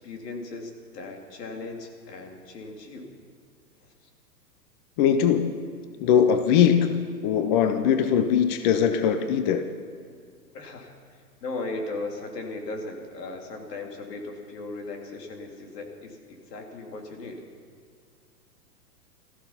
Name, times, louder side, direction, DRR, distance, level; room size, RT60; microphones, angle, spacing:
voice 1, 0.0-3.1 10.5-17.4, left 2 dB, 70° left, 2 dB, 3.0 m, -37 dB
voice 2, 5.0-5.5 6.0-9.7, left 8 dB, 30° left, 8 dB, 0.6 m, -21 dB
15.5 x 14.0 x 5.7 m, 2.1 s
hypercardioid pair, 130°, 49 cm